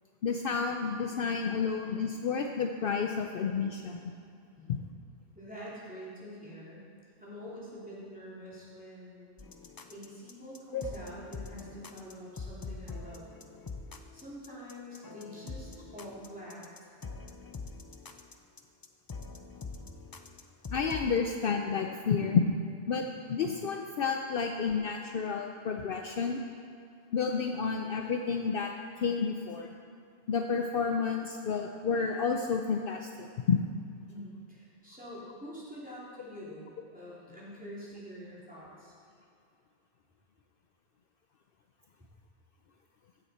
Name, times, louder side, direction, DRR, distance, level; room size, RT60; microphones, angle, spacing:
voice 1, 0.2-4.0 10.7-10.8 20.7-22.6 22.9-26.4 27.1-28.7 29.0-29.7 30.3-33.6, left 5 dB, 65° left, 3 dB, 0.7 m, -30 dB
voice 2, 5.3-6.8 7.2-9.4 9.9-13.3 14.1-16.9 34.1-38.9, equal, 10° right, -8 dB, 2.9 m, -46 dB
sound 1, 9.4-21.2, left 4 dB, 30° left, 0.4 m, -44 dB
15.0 x 7.8 x 4.3 m, 2.4 s
omnidirectional pair, 1.1 m